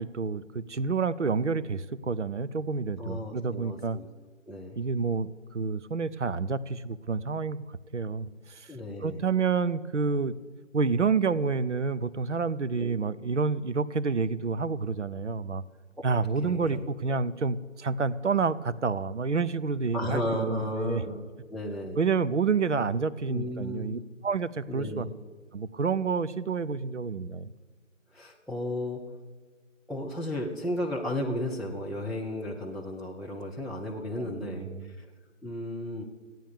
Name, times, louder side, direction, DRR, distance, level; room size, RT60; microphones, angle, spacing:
voice 1, 0.0-4.0 4.7-7.6 7.9-8.7 9.0-10.4 10.7-15.6 16.0-21.0 22.0-25.1 25.5-27.5 34.2-34.9, right 5 dB, 60° right, 16 dB, 0.7 m, -29 dB
voice 2, 3.0-4.1 4.5-4.8 8.7-9.2 12.8-13.1 16.0-16.1 16.4-17.2 19.9-22.0 23.3-24.0 24.7-25.1 28.1-29.0 29.9-35.1 35.4-36.0, left 1 dB, ahead, -5 dB, 0.4 m, -34 dB
14.5 x 9.2 x 7.2 m, 1.4 s
figure-of-eight pair, 160°, 40 cm